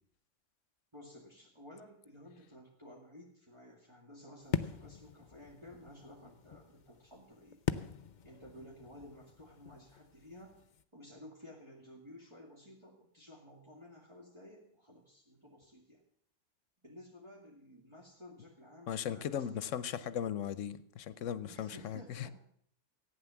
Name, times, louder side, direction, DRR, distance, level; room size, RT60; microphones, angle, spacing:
voice 1, 0.9-7.6 8.2-10.6 10.9-16.0 16.8-19.8 21.4-22.3, left 1 dB, 25° right, -4 dB, 2.3 m, -54 dB
sound 1, 4.4-10.8, left 7 dB, 50° left, 0.7 m, -42 dB
voice 2, 18.9-22.3, left 9 dB, 80° left, 15 dB, 1.1 m, -38 dB
14.5 x 9.4 x 7.1 m, 0.65 s
omnidirectional pair, 1.3 m